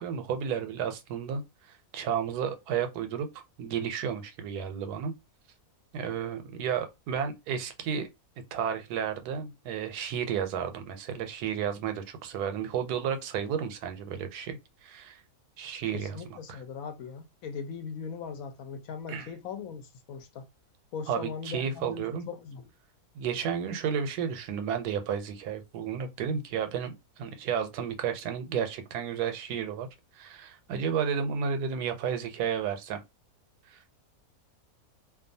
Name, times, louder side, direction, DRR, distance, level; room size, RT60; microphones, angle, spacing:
voice 1, 0.0-1.4 1.7-5.1 5.9-8.1 8.5-15.2 15.6-16.6 19.1-19.3 21.1-22.2 23.1-26.9 27.2-29.9 30.1-33.0 33.7-33.9, right 7 dB, 90° right, 1.1 m, -32 dB
voice 2, 15.9-20.5 20.9-22.7, left 6 dB, 70° left, 0.9 m, -40 dB
2.5 x 2.3 x 2.6 m
omnidirectional pair, 1.6 m